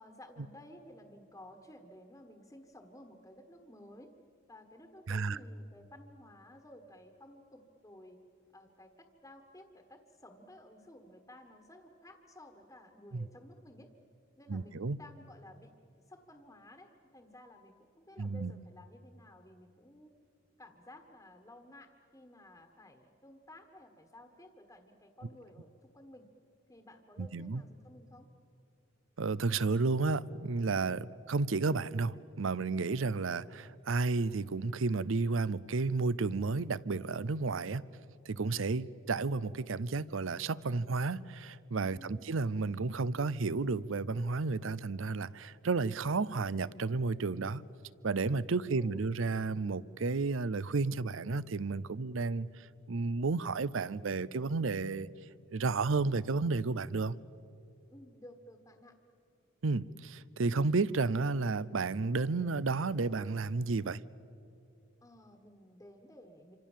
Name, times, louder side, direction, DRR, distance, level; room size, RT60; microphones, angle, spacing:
voice 1, 0.0-4.1 4.5-8.2 8.5-13.9 14.4-15.7 16.1-20.1 20.6-26.2 26.7-28.3 41.9-42.4 48.5-49.2 57.9-58.9 65.0-66.6, left 1 dB, 15° left, 1.5 m, -55 dB
voice 2, 5.1-5.4 13.1-13.3 14.5-15.0 18.2-18.5 27.2-27.6 29.2-37.8 38.3-47.6 48.0-52.5 52.9-55.1 55.5-57.1 59.6-64.0, right 3 dB, 70° right, 0.6 m, -32 dB
27.0 x 26.0 x 7.4 m
head